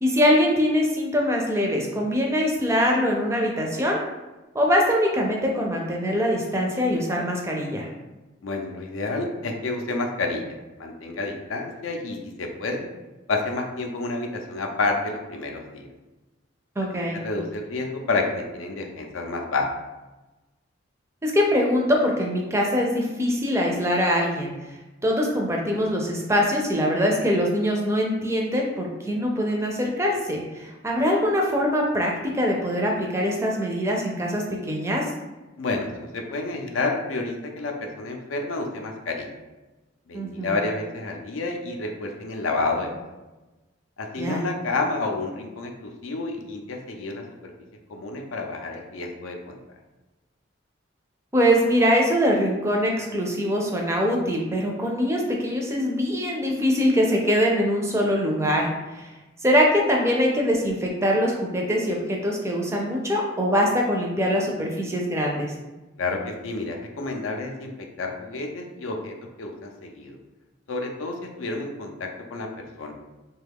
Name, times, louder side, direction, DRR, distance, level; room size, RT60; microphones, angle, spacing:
voice 1, 0.0-4.0 4.5-7.9 16.8-17.2 21.2-24.5 25.0-35.1 40.1-40.5 44.2-44.4 51.3-59.1 59.4-65.5, equal, 15° right, 0 dB, 0.4 m, -23 dB
voice 2, 8.4-12.9 13.3-15.9 17.1-19.7 35.6-39.3 40.1-43.0 44.0-47.5 47.9-49.6 66.0-70.2 70.7-72.9, left 3 dB, 85° left, 3 dB, 0.5 m, -30 dB
3.1 x 2.3 x 3.4 m, 1.1 s
head